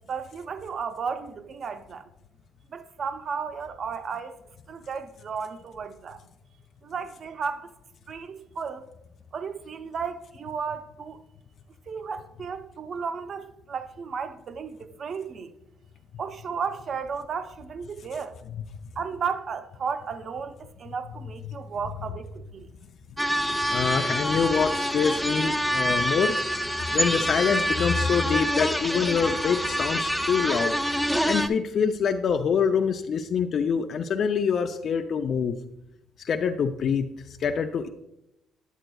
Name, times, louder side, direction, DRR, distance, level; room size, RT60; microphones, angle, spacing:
voice 1, 0.1-2.1 2.7-4.4 4.7-6.2 6.8-7.7 8.1-8.8 9.3-11.2 11.9-15.5 16.2-18.3 19.0-22.7, right 6 dB, 50° right, 0.6 m, -34 dB
sound 1, 23.2-31.5, equal, ahead, 0.5 m, -26 dB
voice 2, 23.7-26.4 26.9-30.7 31.3-35.6 36.2-37.9, left 6 dB, 55° left, 0.4 m, -25 dB
9.0 x 7.7 x 2.3 m
cardioid pair, 85°, 0 cm